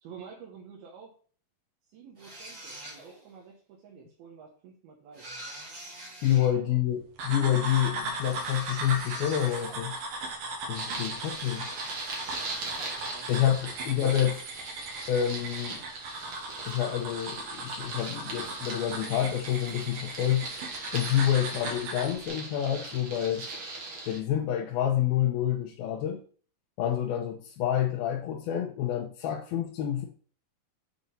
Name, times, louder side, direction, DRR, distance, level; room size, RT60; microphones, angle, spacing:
voice 1, 0.0-1.1 1.8-5.3 6.4-6.8 13.1-13.3 13.6-13.7, right 6 dB, 90° right, -2 dB, 2.9 m, -50 dB
sound 1, 2.2-3.3 5.1-6.5 8.1-10.2 11.2-13.2, right 1 dB, 35° right, 1.4 m, -45 dB
voice 2, 6.2-10.0 10.7-11.7 13.3-14.4 15.1-15.8 16.7-20.5 20.9-23.5 24.1-26.2 26.8-30.1, left 10 dB, 90° left, 0 dB, 2.6 m, -28 dB
sound 2, 7.2-22.1, right 2 dB, 75° right, 3.1 m, -38 dB
sound 3, 10.7-24.2, right 3 dB, 50° right, 1.5 m, -40 dB
8.0 x 4.1 x 3.9 m, 0.43 s
omnidirectional pair, 4.3 m